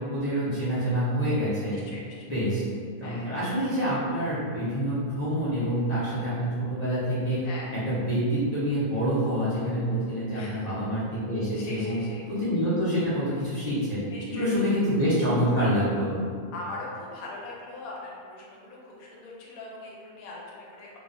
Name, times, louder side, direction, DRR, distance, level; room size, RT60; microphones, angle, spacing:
voice 1, 0.0-1.8 2.3-2.6 3.0-12.0 12.3-14.0 14.3-16.1, equal, 45° left, -12 dB, 0.6 m, -27 dB
voice 2, 1.7-2.3 3.0-3.3 7.4-7.7 10.3-10.8 11.5-12.3 14.1-14.6 16.5-20.9, left 2 dB, 85° left, -3 dB, 1.0 m, -41 dB
2.3 x 2.2 x 2.5 m, 2.1 s
omnidirectional pair, 1.4 m